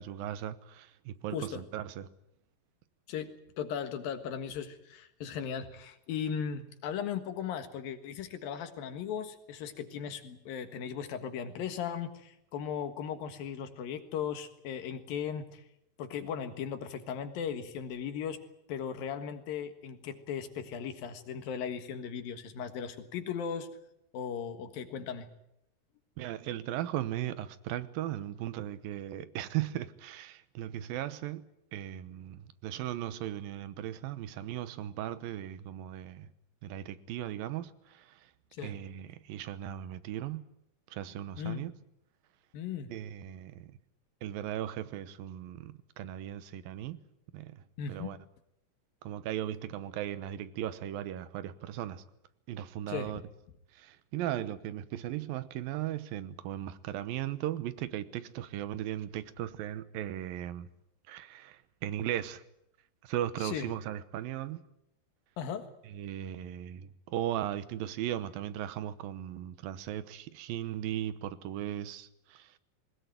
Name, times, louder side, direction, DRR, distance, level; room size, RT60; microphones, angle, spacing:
voice 1, 0.0-2.1 26.2-36.3 36.6-38.3 38.6-40.5 40.9-41.7 42.9-43.7 44.2-47.0 47.3-47.6 47.9-48.2 49.0-52.0 52.5-53.2 53.7-60.7 61.1-62.4 63.0-64.6 65.8-72.5, right 12 dB, 90° right, 2.8 m, -37 dB
voice 2, 1.3-1.6 3.1-15.6 16.0-18.4 18.7-23.7 24.1-25.3 38.6-38.8 41.4-41.7 42.5-42.9 47.8-48.1 52.9-53.1 63.4-63.7 65.4-65.7, left 7 dB, 90° left, 3.4 m, -37 dB
20.5 x 19.5 x 9.1 m
omnidirectional pair, 4.0 m